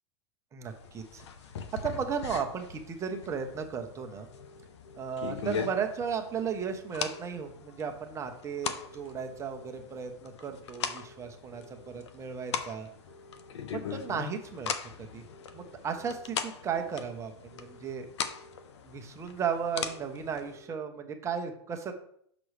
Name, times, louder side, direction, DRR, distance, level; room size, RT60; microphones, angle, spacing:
voice 1, 0.5-1.2 1.8-4.3 5.0-12.9 13.7-15.2 15.5-18.1 18.8-21.9, right 6 dB, 20° right, 5 dB, 0.9 m, -35 dB
sound 1, 0.7-20.6, left 7 dB, 85° left, 0.7 m, -40 dB
sound 2, 4.3-5.3 6.4-7.5 8.6-9.8 10.8-12.0 13.1-14.2 15.3-16.4 17.5-18.6 19.7-20.9, left 1 dB, 55° left, 1.8 m, -54 dB
6.2 x 6.0 x 3.2 m, 0.66 s
supercardioid pair, 135°, 14 cm